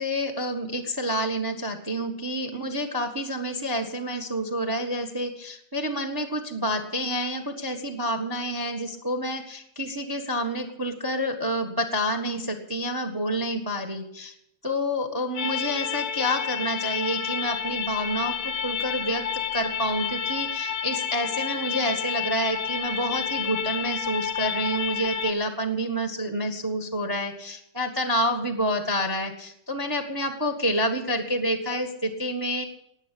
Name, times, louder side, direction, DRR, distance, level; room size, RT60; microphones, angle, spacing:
voice 1, 0.0-14.3 14.6-19.2 19.5-32.6, equal, 25° right, 6 dB, 0.5 m, -28 dB
sound 1, 15.4-25.3, left 8 dB, 65° left, 1.2 m, -30 dB
18.5 x 7.5 x 10.0 m, 0.77 s
omnidirectional pair, 3.3 m